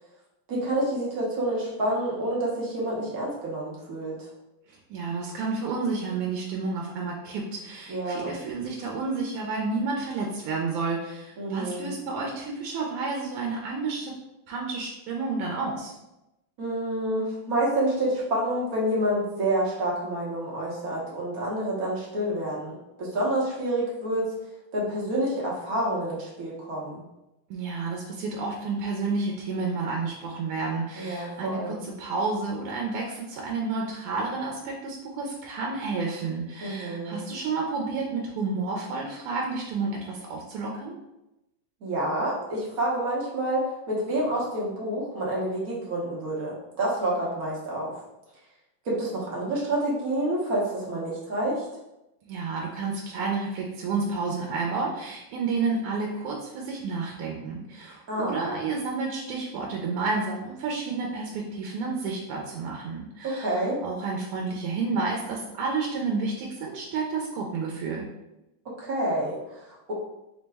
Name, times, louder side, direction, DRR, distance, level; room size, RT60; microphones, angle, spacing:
voice 1, 0.5-4.3 7.9-8.3 11.4-11.9 16.6-24.3 24.7-27.0 31.0-31.8 36.6-37.2 41.8-48.0 48.9-51.6 58.1-58.6 63.2-63.8 68.8-69.9, right 1 dB, 55° right, -5 dB, 1.0 m, -28 dB
voice 2, 4.9-14.2 14.5-15.9 27.5-41.0 52.3-68.1, right 4 dB, 85° right, -1 dB, 1.5 m, -30 dB
4.4 x 2.1 x 3.3 m, 0.92 s
omnidirectional pair, 2.4 m